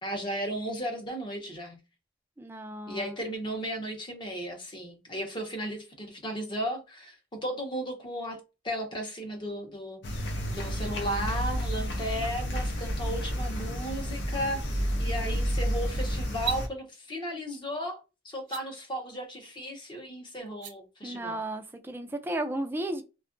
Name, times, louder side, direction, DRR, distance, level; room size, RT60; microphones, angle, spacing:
voice 1, 0.0-1.8 2.9-8.4 8.6-10.0 10.5-21.4, equal, 25° left, 0.7 m, -35 dB
voice 2, 2.4-3.1 21.0-23.0, right 1 dB, 10° right, 0.3 m, -34 dB
sound 1, 10.0-16.7, equal, 70° left, 0.6 m, -31 dB
sound 2, 16.3-16.6 18.4-18.6 20.5-20.7, right 9 dB, 70° right, 0.5 m, -34 dB
2.6 x 2.3 x 2.5 m
head